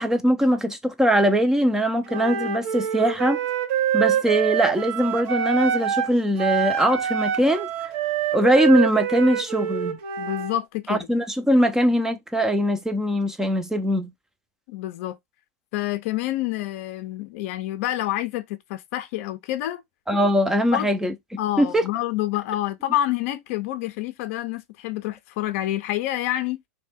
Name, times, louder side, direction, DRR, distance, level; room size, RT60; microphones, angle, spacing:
voice 1, 0.0-3.4 3.9-7.7 8.3-10.0 10.9-14.1 20.1-21.1 21.6-21.8, equal, 5° right, 0.4 m, -21 dB
Wind instrument woodwind instrument, 2.1-6.1 6.4-10.6, right 9 dB, 60° right, 0.7 m, -25 dB
voice 2, 10.2-11.1 14.7-15.2 15.7-19.8 20.7-20.9 21.4-26.6, left 14 dB, 60° left, 0.5 m, -28 dB
2.6 x 2.2 x 3.4 m
hypercardioid pair, 115°, 8 cm